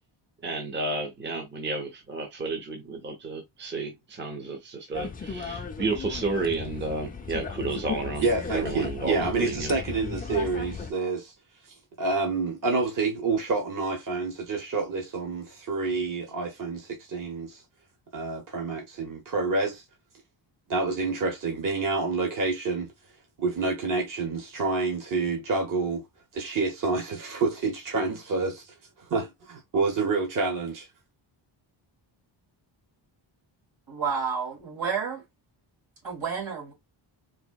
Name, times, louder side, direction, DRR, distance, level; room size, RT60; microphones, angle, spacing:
voice 1, 0.4-8.3 8.5-9.7, right 3 dB, 25° right, 0.7 m, -32 dB
sound 1, 4.9-10.9, left 5 dB, 20° left, 0.4 m, -36 dB
voice 2, 8.2-11.3 11.6-17.6 18.1-19.8 20.7-22.9 23.4-26.1 26.3-28.7 29.0-30.9, right 3 dB, 45° right, 1.1 m, -28 dB
voice 3, 33.9-35.2 36.0-36.7, right 6 dB, 75° right, 2.3 m, -30 dB
3.9 x 2.7 x 2.3 m
wide cardioid pair, 140°, 46 cm